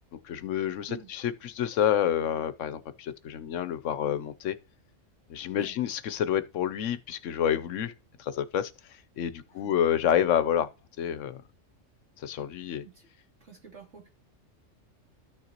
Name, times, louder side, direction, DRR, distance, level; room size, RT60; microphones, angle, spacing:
voice 1, 0.2-4.6 5.3-7.9 8.2-8.7 9.2-10.7 11.0-11.4 12.2-12.8, left 9 dB, 80° left, 1.0 m, -28 dB
voice 2, 13.4-14.1, right 7 dB, 65° right, 3.0 m, -48 dB
13.5 x 6.5 x 2.9 m
omnidirectional pair, 1.3 m